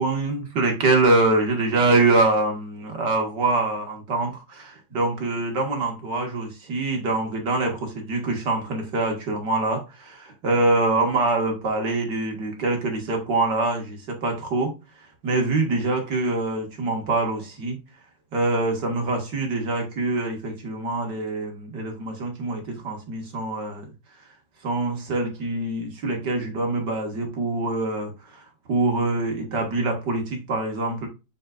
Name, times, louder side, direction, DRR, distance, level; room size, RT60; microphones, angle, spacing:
voice 1, 0.0-14.7 15.2-17.8 18.3-23.9 24.6-28.4 28.7-31.1, right 2 dB, 70° right, 2.6 m, -24 dB
7.4 x 5.4 x 2.5 m
omnidirectional pair, 1.9 m